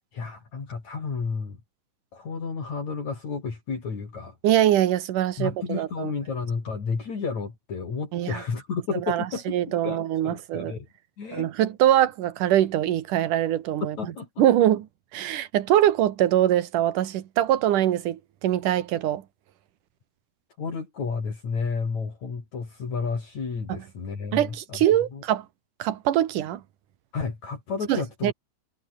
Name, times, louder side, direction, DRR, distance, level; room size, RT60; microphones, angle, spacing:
voice 1, 0.1-1.6 2.1-4.4 5.4-10.9 11.2-11.5 14.0-14.3 20.6-24.8 25.1-25.2 27.1-28.3, left 5 dB, 55° left, 5.8 m, -31 dB
voice 2, 4.4-6.1 8.1-8.4 9.1-10.7 11.3-14.0 14.4-14.9 15.1-19.2 23.7-23.8 24.3-25.5 25.8-26.6 27.9-28.3, right 12 dB, 70° right, 2.9 m, -23 dB
omnidirectional pair, 4.0 m